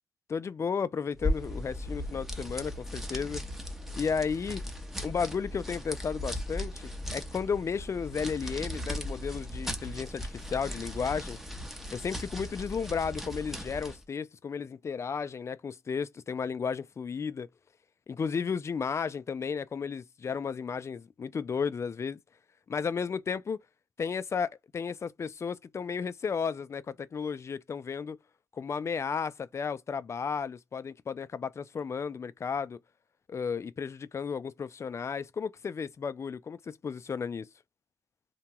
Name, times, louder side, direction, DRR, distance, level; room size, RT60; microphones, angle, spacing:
voice 1, 0.3-3.4 3.9-4.6 5.0-11.4 11.9-17.5 18.1-22.2 22.7-23.6 24.0-28.2 28.5-32.8 33.3-36.6 36.8-37.5, left 6 dB, 45° left, 0.4 m, -33 dB
sound 1, 1.1-14.0, left 1 dB, 5° right, 0.7 m, -37 dB
2.9 x 2.2 x 2.9 m
cardioid pair, 80°, 7 cm